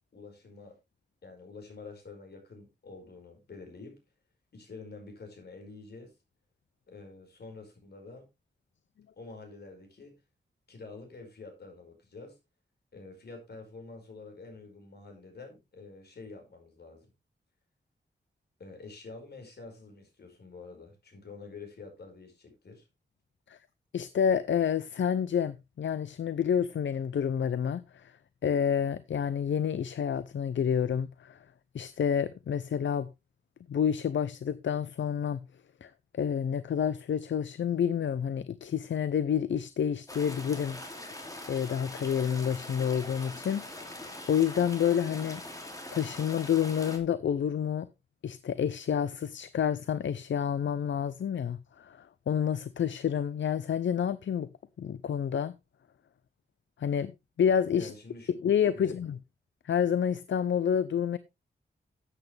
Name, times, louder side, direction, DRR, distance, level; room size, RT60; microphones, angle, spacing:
voice 1, 0.1-0.8 1.2-4.0 4.5-6.2 6.9-8.3 9.2-10.2 10.7-12.4 12.9-17.1 18.6-22.9 57.7-58.3 58.7-58.9, left 3 dB, 60° left, 5.2 m, -47 dB
voice 2, 23.9-28.1 28.4-31.4 31.7-33.1 33.7-35.4 35.8-40.8 41.5-45.4 45.9-47.9 48.2-54.5 54.8-55.5 56.8-57.1 57.4-57.9 58.3-59.2 59.6-61.2, left 8 dB, 80° left, 0.6 m, -29 dB
sound 1, 40.1-47.0, left 1 dB, 20° left, 2.7 m, -43 dB
13.5 x 8.4 x 3.4 m
wide cardioid pair, 150°, 19 cm